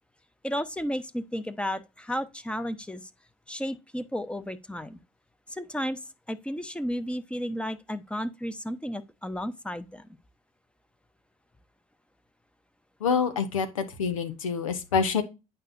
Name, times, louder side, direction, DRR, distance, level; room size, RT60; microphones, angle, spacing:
voice 1, 0.4-3.1 3.5-5.0 5.5-6.0 6.3-10.1, equal, 5° left, 0.9 m, -33 dB
voice 2, 13.0-15.2, left 6 dB, 80° left, 1.0 m, -26 dB
8.9 x 5.5 x 2.5 m
hypercardioid pair, 55°, 17 cm